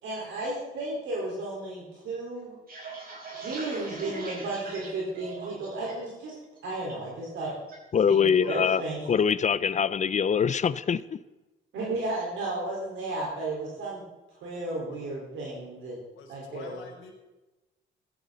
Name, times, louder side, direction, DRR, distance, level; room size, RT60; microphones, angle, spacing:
voice 1, 0.0-2.6 3.4-6.4 6.6-7.5 8.1-9.0 11.7-14.0 14.4-16.0 16.3-16.8, right 2 dB, 80° right, -4 dB, 4.4 m, -33 dB
sound 1, 2.4-6.1 6.4-6.9 7.3-7.8 8.0-9.3 9.6-9.9 10.2-10.7, right 3 dB, 45° right, 5.3 m, -42 dB
voice 2, 7.9-8.8 9.1-11.2, left 7 dB, 35° left, 17 dB, 0.5 m, -24 dB
voice 3, 16.1-17.1, left 4 dB, 80° left, 0 dB, 4.4 m, -46 dB
16.0 x 13.0 x 4.0 m, 1.1 s
cardioid pair, 90°, 20 cm